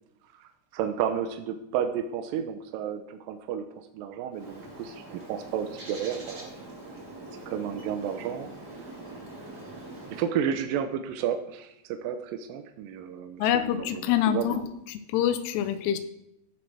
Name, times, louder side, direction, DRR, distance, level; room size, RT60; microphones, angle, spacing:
voice 1, 0.4-3.7 3.9-6.5 7.5-8.5 10.1-14.6, right 8 dB, 80° right, 6 dB, 2.1 m, -32 dB
Bird, 4.3-10.3, right 2 dB, 30° right, 2.2 m, -43 dB
voice 2, 13.4-14.5 14.9-16.0, left 10 dB, 90° left, 10 dB, 2.9 m, -25 dB
15.0 x 7.7 x 3.4 m, 0.82 s
omnidirectional pair, 4.7 m